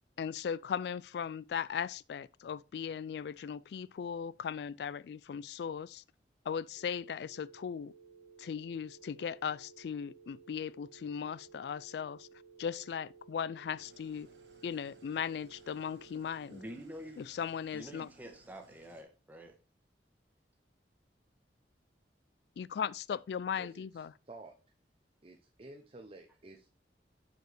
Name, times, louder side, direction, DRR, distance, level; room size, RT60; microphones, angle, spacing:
voice 1, 0.2-6.0 6.5-7.9 8.4-12.3 12.6-14.3 14.6-16.6 17.2-18.1 22.6-24.1, left 7 dB, 65° left, 0.3 m, -38 dB
sound 1, 6.8-16.8, right 5 dB, 40° left, 1.9 m, -57 dB
Engine starting / Idling, 13.8-19.0, right 2 dB, 80° right, 2.0 m, -64 dB
voice 2, 16.5-17.3 17.7-19.6, equal, 10° right, 1.3 m, -47 dB
voice 3, 25.2-26.7, right 2 dB, 35° right, 0.7 m, -51 dB
6.7 x 6.6 x 3.3 m
head